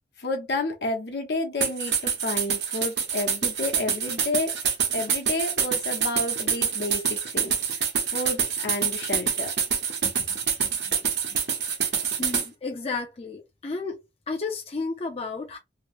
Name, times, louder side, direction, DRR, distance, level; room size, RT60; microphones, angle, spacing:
voice 1, 0.2-4.6 4.9-9.5 10.0-10.8 11.3-11.4, left 2 dB, 75° left, 0.9 m, -31 dB
sound 1, 1.6-12.5, right 7 dB, 85° right, 1.1 m, -26 dB
voice 2, 12.2-14.0 14.3-15.6, left 3 dB, 35° left, 0.4 m, -32 dB
2.9 x 2.0 x 3.0 m
head